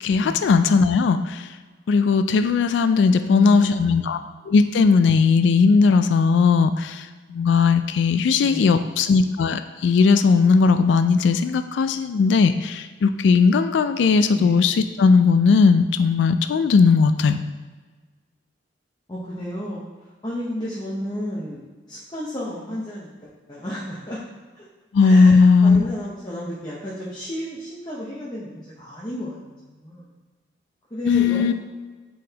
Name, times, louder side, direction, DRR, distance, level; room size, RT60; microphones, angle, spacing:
voice 1, 0.0-1.5 1.9-4.2 4.5-17.4 24.9-25.9 31.1-31.5, left 5 dB, 75° left, 10 dB, 0.3 m, -18 dB
voice 2, 3.2-4.2 8.4-8.8 14.3-14.6 19.1-19.9 20.2-21.6 21.9-24.2 24.5-24.7 25.0-30.1 30.9-31.5, equal, 25° left, -6 dB, 0.8 m, -32 dB
8.3 x 4.0 x 2.8 m, 1.4 s
head